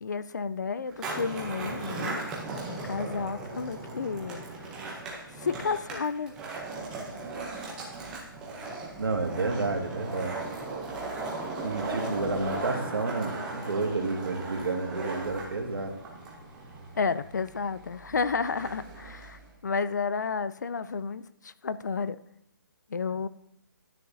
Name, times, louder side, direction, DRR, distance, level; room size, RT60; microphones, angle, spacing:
voice 1, 0.0-2.2 2.7-4.4 5.4-6.3 16.9-22.2 22.9-23.3, left 5 dB, 55° left, 15 dB, 0.4 m, -31 dB
Skateboard, 0.9-19.5, right 3 dB, 5° right, 0.7 m, -37 dB
voice 2, 9.0-10.4 11.6-16.0, right 3 dB, 85° right, 3 dB, 1.9 m, -30 dB
10.5 x 9.6 x 2.7 m, 0.76 s
hypercardioid pair, 175°, 12 cm